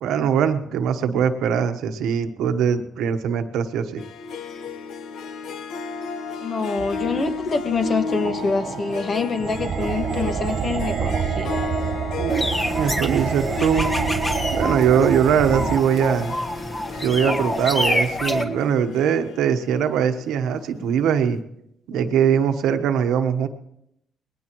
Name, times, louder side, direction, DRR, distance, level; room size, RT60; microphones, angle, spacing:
voice 1, 0.0-4.0 12.2-12.5 12.8-13.9 14.5-16.4 17.0-21.4 21.9-23.5, right 8 dB, 85° right, 8 dB, 1.1 m, -21 dB
Harp, 4.0-20.8, left 4 dB, 75° left, 1.0 m, -33 dB
voice 2, 6.4-11.5 15.5-15.7, left 4 dB, 45° left, 7 dB, 1.6 m, -26 dB
sound 1, 6.8-15.8, right 8 dB, 55° right, 0.6 m, -28 dB
sound 2, 12.3-18.4, left 1 dB, 20° left, 1.5 m, -27 dB
20.5 x 18.5 x 3.1 m, 0.79 s
cardioid pair, 90°, 0 cm